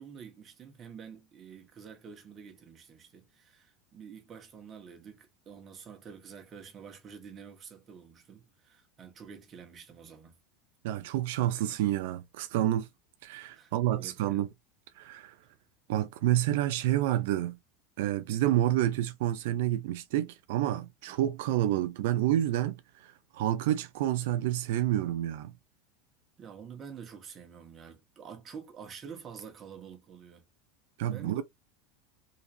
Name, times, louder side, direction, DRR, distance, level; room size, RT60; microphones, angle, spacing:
voice 1, 0.0-10.4 13.5-14.4 21.1-21.3 26.4-30.4 31.1-31.4, right 6 dB, 30° right, 1.3 m, -48 dB
voice 2, 10.8-12.9 13.2-14.5 15.0-15.3 15.9-17.6 18.0-25.5 31.0-31.4, right 13 dB, 75° right, 0.4 m, -29 dB
3.9 x 2.9 x 2.6 m
supercardioid pair, 140°, 0 cm